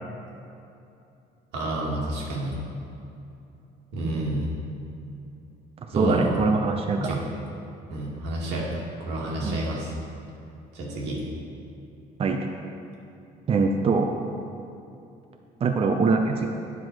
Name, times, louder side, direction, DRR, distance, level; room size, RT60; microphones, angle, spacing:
voice 1, 1.5-2.6 3.9-4.5 5.9-6.3 6.9-7.2 7.9-8.7 9.0-9.9 10.7-11.2, right 1 dB, 90° right, -4 dB, 2.1 m, -29 dB
voice 2, 5.9-7.2 9.4-9.5 12.2-12.5 13.5-14.1 15.6-16.5, right 4 dB, 35° right, 4 dB, 0.6 m, -23 dB
9.8 x 6.0 x 4.6 m, 2.8 s
cardioid pair, 110°, 17 cm